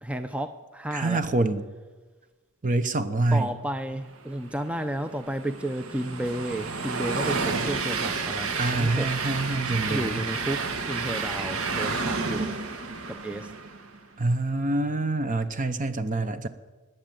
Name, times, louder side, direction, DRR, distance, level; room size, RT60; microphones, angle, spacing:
voice 1, 0.0-1.3 3.3-9.1 9.9-12.5 13.1-13.5, right 1 dB, 5° right, 9 dB, 0.5 m, -32 dB
voice 2, 0.9-1.7 2.6-3.5 8.6-10.2 14.2-16.5, right 2 dB, 35° right, 10 dB, 0.8 m, -26 dB
Train, 4.6-14.0, right 4 dB, 65° right, 1.4 m, -30 dB
20.0 x 7.8 x 9.1 m, 1.2 s
head